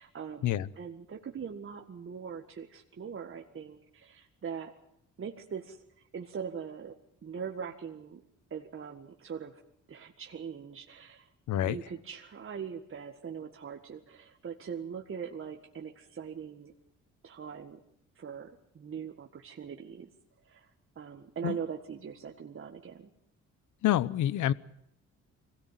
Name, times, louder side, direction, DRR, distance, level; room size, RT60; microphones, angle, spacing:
voice 1, 0.0-4.7 5.2-7.0 7.2-8.2 8.5-9.6 9.9-11.3 11.6-16.7 17.2-17.8 18.2-20.1 20.4-20.7 21.0-23.1, right 7 dB, 45° right, 3 dB, 1.8 m, -41 dB
voice 2, 23.8-24.5, left 12 dB, 75° left, 19 dB, 0.9 m, -27 dB
23.0 x 17.0 x 9.3 m, 0.75 s
cardioid pair, 90°, 30 cm